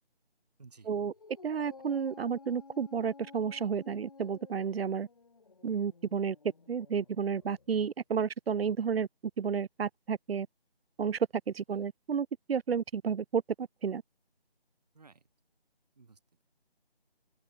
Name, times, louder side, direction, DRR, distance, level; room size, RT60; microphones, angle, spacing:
voice 1, 0.6-1.1 11.7-11.9 14.9-15.3 15.9-16.4, right 4 dB, 40° right, 6.4 m, -57 dB
Dog, 1.1-7.7, left 4 dB, 35° left, 2.4 m, -54 dB
voice 2, 1.4-5.1 5.6-6.4 6.7-9.1 9.4-10.5 11.0-11.2 11.5-14.0, right 7 dB, 70° right, 0.5 m, -31 dB
open air
figure-of-eight pair, 170°, 31 cm